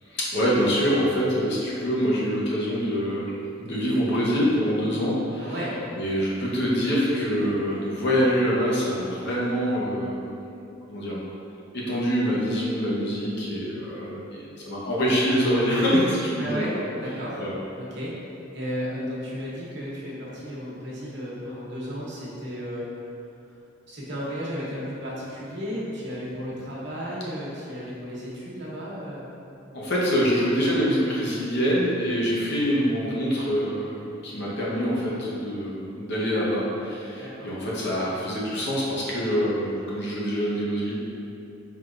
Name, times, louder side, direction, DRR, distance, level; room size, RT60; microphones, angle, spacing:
voice 1, 0.1-5.5 6.0-10.2 10.9-11.2 11.7-16.6 17.4-17.5 29.7-40.9, equal, 60° left, -5 dB, 0.8 m, -25 dB
voice 2, 5.4-5.8 16.4-17.4 17.8-18.1 18.5-22.8 23.9-29.3 37.2-37.5, equal, 60° right, -6 dB, 1.0 m, -34 dB
4.6 x 3.3 x 2.5 m, 2.7 s
head